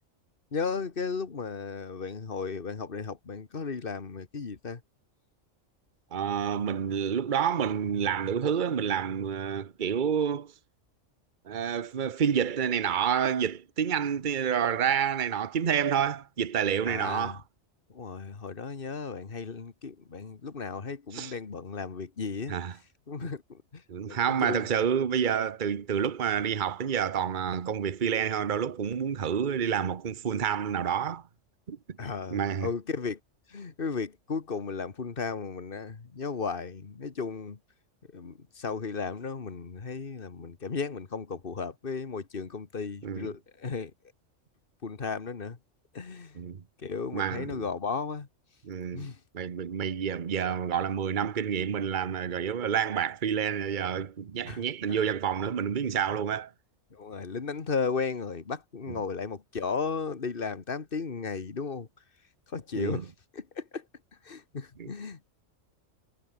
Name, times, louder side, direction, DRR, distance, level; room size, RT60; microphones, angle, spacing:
voice 1, 0.5-4.8 16.9-17.4 17.9-22.6 23.1-23.8 24.1-24.7 32.0-33.2 33.5-37.6 38.1-43.9 44.8-45.6 45.9-46.4 46.8-48.3 48.9-49.2 54.5-55.1 56.9-61.9 62.5-63.8 64.2-65.3, left 5 dB, 45° left, 1.8 m, -35 dB
voice 2, 6.1-10.5 11.5-17.4 21.1-21.3 22.5-22.7 23.9-31.2 31.7-31.8 32.3-32.7 43.0-43.3 46.4-46.6 47.1-47.7 48.6-56.5 62.8-63.0 64.8-64.9, right 8 dB, 40° right, 1.1 m, -29 dB
omnidirectional pair, 1.3 m